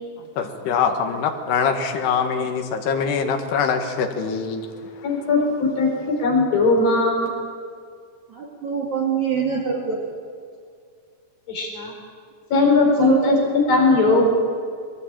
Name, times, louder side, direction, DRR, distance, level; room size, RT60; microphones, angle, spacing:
voice 1, 0.2-4.7, left 6 dB, 80° left, 4 dB, 3.7 m, -23 dB
voice 2, 5.0-5.9 6.2-7.3 11.5-11.9 12.5-14.3, left 3 dB, 60° left, 0 dB, 6.0 m, -19 dB
voice 3, 8.3-10.0 13.0-13.3, right 6 dB, 50° right, -1 dB, 3.6 m, -24 dB
21.5 x 19.0 x 9.0 m, 2.2 s
omnidirectional pair, 4.7 m